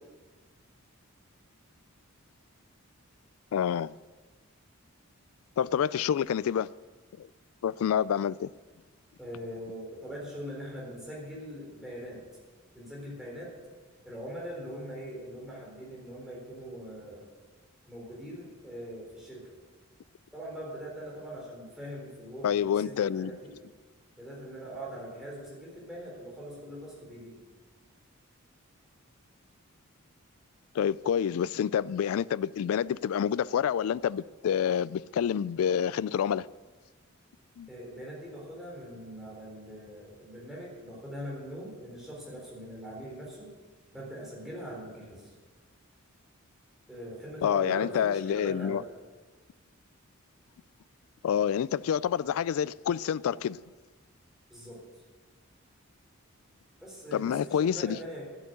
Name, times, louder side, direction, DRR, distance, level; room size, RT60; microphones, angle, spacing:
voice 1, 3.5-3.9 5.6-6.7 7.2-7.3 7.6-8.5 22.4-23.3 30.8-36.5 37.6-37.7 47.4-48.8 51.2-53.6 57.1-58.0, left 8 dB, 80° left, 0.3 m, -28 dB
voice 2, 9.2-12.2 12.7-13.6 14.0-17.3 17.9-19.6 20.3-23.6 24.2-27.4 37.7-43.5 43.9-45.3 46.9-48.9 54.5-54.8 56.8-58.2, equal, ahead, 3.8 m, -42 dB
11.0 x 8.3 x 8.0 m
head